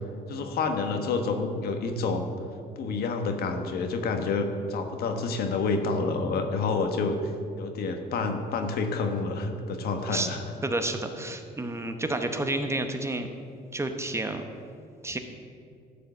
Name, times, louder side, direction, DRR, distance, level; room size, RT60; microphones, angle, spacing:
voice 1, 0.3-2.3 2.8-10.4, left 4 dB, 65° left, 5 dB, 1.3 m, -28 dB
voice 2, 10.6-13.3 13.7-14.4 15.0-15.2, right 2 dB, 15° right, 6 dB, 0.9 m, -30 dB
13.0 x 5.1 x 7.9 m, 2.4 s
cardioid pair, 110°, 17 cm